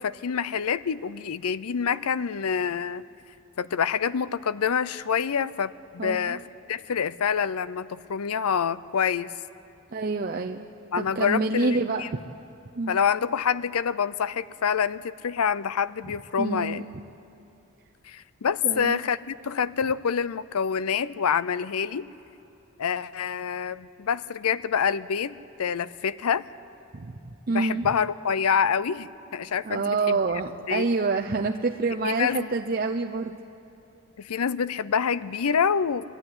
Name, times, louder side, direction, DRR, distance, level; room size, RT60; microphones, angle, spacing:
voice 1, 0.0-3.0 3.6-6.4 6.7-9.3 10.9-12.1 12.9-16.9 18.0-22.1 22.8-26.5 27.5-30.2 30.7-30.9 32.0-32.5 34.2-36.0, left 7 dB, 85° left, 17 dB, 0.5 m, -27 dB
voice 2, 6.0-6.4 9.9-10.7 11.0-12.2 12.7-13.0 16.4-16.8 18.6-19.0 26.9-27.2 27.5-27.9 29.6-33.3, right 3 dB, 40° right, 3 dB, 0.5 m, -27 dB
21.0 x 13.0 x 9.6 m, 2.9 s
head